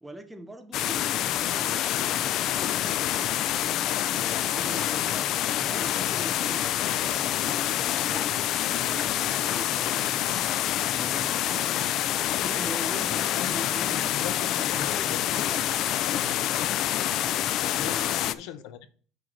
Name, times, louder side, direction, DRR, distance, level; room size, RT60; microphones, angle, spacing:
voice 1, 0.0-3.6 4.1-7.4 7.7-10.5 10.8-11.9 12.4-14.1 14.6-15.7 17.6-18.4, right 1 dB, 5° right, 0.8 m, -42 dB
sound 1, 0.7-18.3, left 12 dB, 45° left, 0.4 m, -27 dB
voice 2, 13.2-15.7 16.1-16.4 17.8-18.9, left 10 dB, 70° left, 0.7 m, -41 dB
6.2 x 4.6 x 6.4 m
cardioid pair, 165°, 0 cm